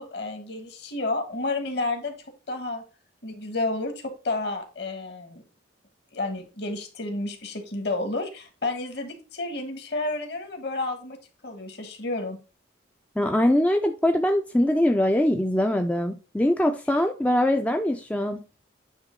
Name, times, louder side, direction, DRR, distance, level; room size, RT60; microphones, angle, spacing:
voice 1, 0.0-2.1 2.5-2.8 3.2-5.4 6.1-11.2 11.4-12.4, left 2 dB, 55° left, 1.5 m, -31 dB
voice 2, 13.2-18.4, left 1 dB, 5° left, 0.3 m, -22 dB
9.0 x 3.0 x 5.2 m
head